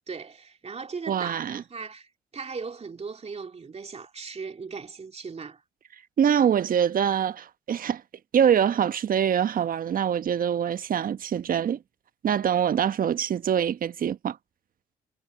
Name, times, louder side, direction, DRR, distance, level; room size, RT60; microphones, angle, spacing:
voice 1, 0.1-2.1 2.3-5.6, right 5 dB, 35° right, 2.6 m, -38 dB
voice 2, 1.1-1.6 6.2-8.0 8.3-11.8 12.2-14.4, right 8 dB, 50° right, 1.3 m, -24 dB
hypercardioid pair, 50°, 19 cm